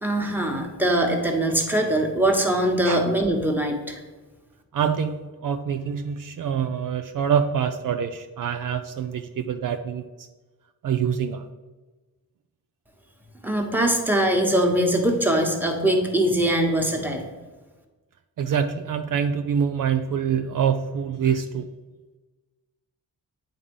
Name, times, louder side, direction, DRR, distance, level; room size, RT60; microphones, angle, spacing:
voice 1, 0.0-4.0 13.4-17.2, right 1 dB, 5° right, 1 dB, 1.3 m, -22 dB
voice 2, 4.7-10.3 10.8-11.5 18.4-21.7, right 7 dB, 60° right, 8 dB, 0.5 m, -25 dB
8.3 x 3.7 x 5.4 m, 1.2 s
cardioid pair, 80°, 36 cm